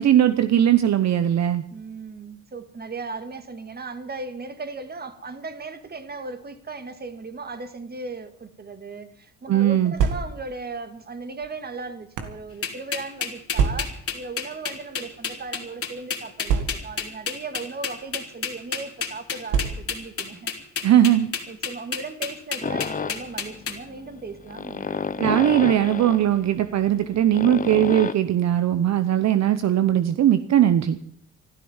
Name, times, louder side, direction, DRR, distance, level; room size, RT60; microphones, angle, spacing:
voice 1, 0.0-1.6 9.5-9.9 20.8-21.3 25.2-31.0, right 11 dB, 60° right, 0.9 m, -19 dB
voice 2, 1.7-20.9 21.5-25.0, right 3 dB, 30° right, 1.9 m, -37 dB
sound 1, 9.9-10.6 11.4-12.4 13.5-14.1 15.0-15.2 15.4-15.5 16.4-17.1 18.0-18.2 19.5-20.1, right 6 dB, 85° right, 1.8 m, -26 dB
sound 2, 12.6-23.8, left 6 dB, 50° left, 2.9 m, -30 dB
sound 3, 22.6-28.1, left 5 dB, 25° left, 0.8 m, -31 dB
14.0 x 12.5 x 7.2 m
cardioid pair, 90°, 30 cm